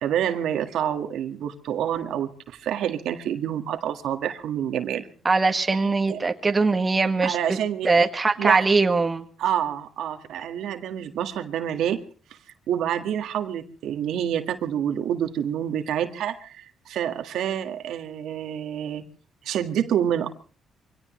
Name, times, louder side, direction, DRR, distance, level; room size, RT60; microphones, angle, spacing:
voice 1, 0.0-5.1 6.1-6.2 7.2-8.0 8.4-8.7 9.4-12.1 12.7-19.0 19.4-20.3, right 9 dB, 80° right, 6 dB, 1.7 m, -27 dB
voice 2, 5.3-7.4 7.8-9.3, right 3 dB, 25° right, 5 dB, 1.8 m, -21 dB
24.5 x 17.5 x 3.2 m, 0.39 s
cardioid pair, 90°, 0 cm